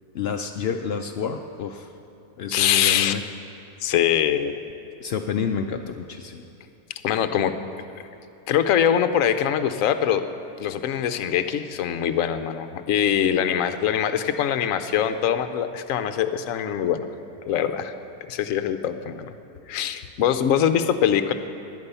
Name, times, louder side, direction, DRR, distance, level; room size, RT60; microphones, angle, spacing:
voice 1, 0.1-1.9 2.4-3.2 5.0-6.4, left 6 dB, 80° left, 5 dB, 0.5 m, -29 dB
voice 2, 2.5-3.1 3.8-4.6 7.0-7.5 8.5-10.2 10.6-17.1 17.5-17.9 18.3-19.3 19.7-21.3, left 9 dB, 65° left, 10 dB, 1.0 m, -23 dB
16.5 x 11.0 x 5.6 m, 2.9 s
omnidirectional pair, 1.7 m